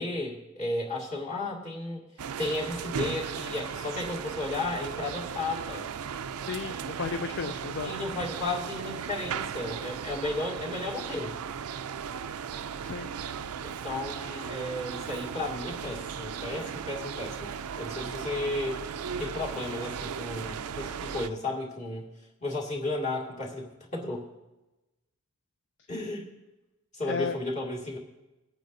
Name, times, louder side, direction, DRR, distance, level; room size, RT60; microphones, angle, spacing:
voice 1, 0.0-2.0 2.4-5.9 7.4-7.5 7.8-11.4 13.6-17.5 17.8-18.8 19.2-22.1 22.4-24.2 25.9-26.3 26.9-28.0, left 2 dB, 35° left, -4 dB, 2.2 m, -34 dB
sound 1, 2.2-21.3, right 7 dB, 90° right, 0.4 m, -36 dB
voice 2, 6.3-7.9 12.8-13.2 27.1-27.4, left 5 dB, 55° left, 9 dB, 0.4 m, -34 dB
19.5 x 9.1 x 2.7 m, 1.0 s
head